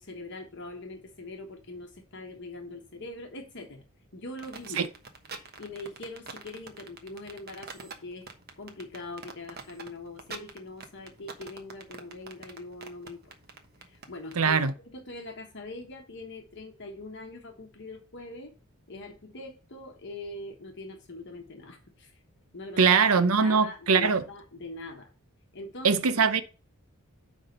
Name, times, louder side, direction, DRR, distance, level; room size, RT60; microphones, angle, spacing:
voice 1, 0.0-3.9 4.1-4.9 5.6-8.3 8.6-13.2 13.8-14.6 14.8-18.5 18.9-22.2 22.5-22.8 23.4-25.1 25.5-26.0, left 2 dB, 55° left, 1.3 m, -42 dB
sound 1, 4.4-14.4, right 4 dB, 45° right, 1.2 m, -44 dB
voice 2, 14.4-14.7 22.8-24.2 25.8-26.4, right 5 dB, 75° right, 0.7 m, -22 dB
9.8 x 3.6 x 5.3 m
head